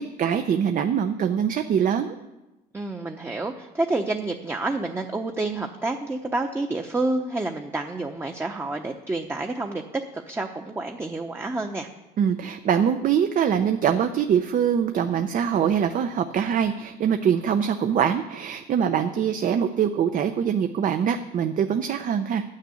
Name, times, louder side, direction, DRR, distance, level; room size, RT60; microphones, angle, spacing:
voice 1, 0.0-2.1 12.2-22.4, right 8 dB, 50° right, 7 dB, 0.7 m, -23 dB
voice 2, 2.7-11.9, right 2 dB, 15° right, 4 dB, 0.9 m, -29 dB
11.5 x 6.6 x 8.4 m, 1.0 s
cardioid pair, 110°, 17 cm